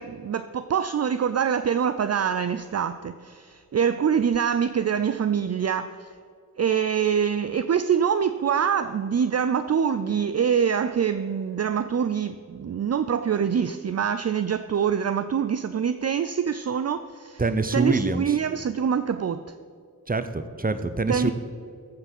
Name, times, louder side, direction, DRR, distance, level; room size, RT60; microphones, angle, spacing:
voice 1, 0.0-6.1 6.6-17.4 17.7-19.4 21.1-21.3, right 7 dB, 45° right, 12 dB, 0.4 m, -25 dB
voice 2, 17.4-18.4 20.1-21.3, right 3 dB, 25° right, 11 dB, 0.8 m, -25 dB
15.0 x 5.7 x 6.1 m, 2.2 s
cardioid pair, 40°, 35 cm